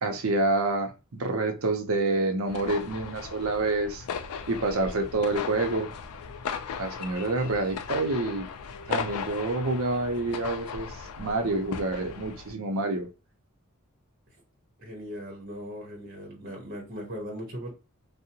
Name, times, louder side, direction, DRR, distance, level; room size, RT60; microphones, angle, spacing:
voice 1, 0.0-4.1 4.5-5.9 6.8-8.5 8.9-13.1, right 2 dB, 75° right, 0.6 m, -28 dB
sound 1, 2.5-12.5, left 6 dB, 85° left, 0.4 m, -37 dB
voice 2, 14.8-17.7, equal, 40° right, 0.8 m, -38 dB
2.7 x 2.0 x 2.7 m
head